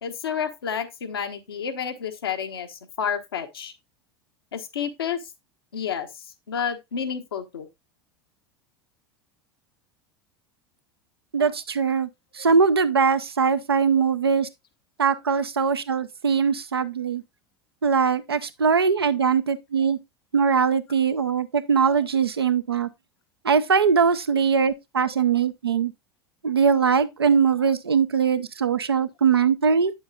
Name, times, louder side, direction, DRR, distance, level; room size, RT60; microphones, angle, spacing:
voice 1, 0.0-3.7 4.5-5.2 5.7-7.7 13.9-14.0, left 7 dB, 75° left, 1.1 m, -30 dB
voice 2, 11.3-12.1 12.3-14.5 15.0-17.2 17.8-20.0 20.3-22.9 23.4-25.9 26.4-29.9, right 6 dB, 80° right, 0.6 m, -21 dB
8.7 x 7.2 x 2.3 m
figure-of-eight pair, 80°, 13 cm